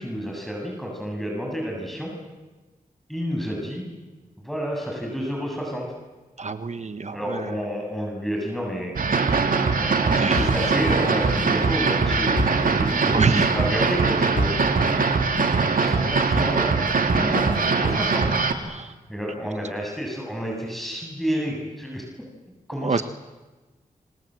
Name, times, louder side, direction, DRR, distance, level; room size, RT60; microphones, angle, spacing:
voice 1, 0.0-2.1 3.1-3.8 4.4-5.9 7.1-8.9 9.5-12.4 12.6-15.2 15.8-18.3 19.1-22.0 22.7-23.0, equal, ahead, -1 dB, 7.8 m, -30 dB
voice 2, 6.4-7.5 10.1-10.7 13.1-13.5 18.7-18.9 22.8-23.0, right 4 dB, 50° right, 10 dB, 1.2 m, -27 dB
sound 1, 9.0-18.5, right 4 dB, 70° right, 2.7 m, -22 dB
sound 2, 10.4-13.6 13.9-14.0 14.4-14.9 15.4-15.9 16.4-18.1, left 3 dB, 60° left, 6.1 m, -32 dB
27.0 x 27.0 x 7.9 m, 1.2 s
cardioid pair, 70°, 15 cm